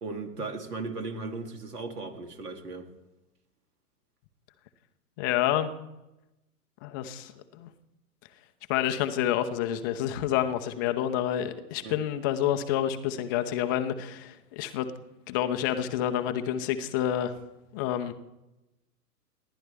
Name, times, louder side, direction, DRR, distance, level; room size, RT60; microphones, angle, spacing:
voice 1, 0.0-2.9 11.8-12.0, right 3 dB, 70° right, 5 dB, 2.6 m, -37 dB
voice 2, 5.2-5.7 6.8-7.7 8.7-14.9 15.3-17.3 17.7-18.1, left 11 dB, 15° left, 8 dB, 0.4 m, -28 dB
29.5 x 11.0 x 3.4 m, 0.98 s
figure-of-eight pair, 115°, 47 cm